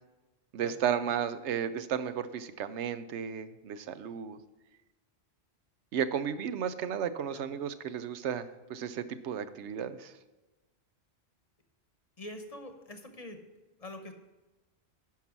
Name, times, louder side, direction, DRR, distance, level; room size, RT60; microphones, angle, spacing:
voice 1, 0.5-4.4 5.9-10.1, right 8 dB, 85° right, 12 dB, 0.9 m, -33 dB
voice 2, 12.2-13.4 13.8-14.1, left 1 dB, 35° left, 6 dB, 0.9 m, -44 dB
10.5 x 5.7 x 6.0 m, 1.1 s
omnidirectional pair, 1.2 m